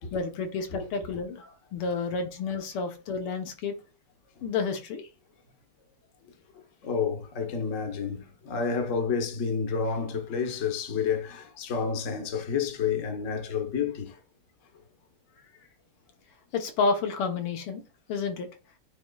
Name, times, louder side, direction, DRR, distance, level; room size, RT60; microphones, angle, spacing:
voice 1, 0.1-1.4 1.7-3.7 4.4-5.1 16.5-17.8 18.1-18.5, left 4 dB, 80° left, 2.0 m, -30 dB
voice 2, 6.8-14.2, left 6 dB, 45° left, 1.3 m, -30 dB
9.5 x 4.2 x 2.3 m
omnidirectional pair, 2.4 m